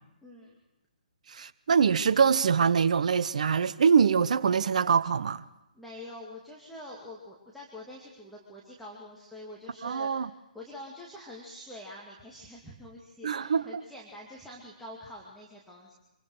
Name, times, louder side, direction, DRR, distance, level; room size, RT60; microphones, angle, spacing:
voice 1, 0.2-0.5 5.7-15.9, left 1 dB, ahead, 2.4 m, -46 dB
voice 2, 1.3-5.4 9.8-10.3 13.2-13.8, right 6 dB, 50° right, 0.9 m, -24 dB
26.5 x 24.0 x 4.9 m
figure-of-eight pair, 130°, 5 cm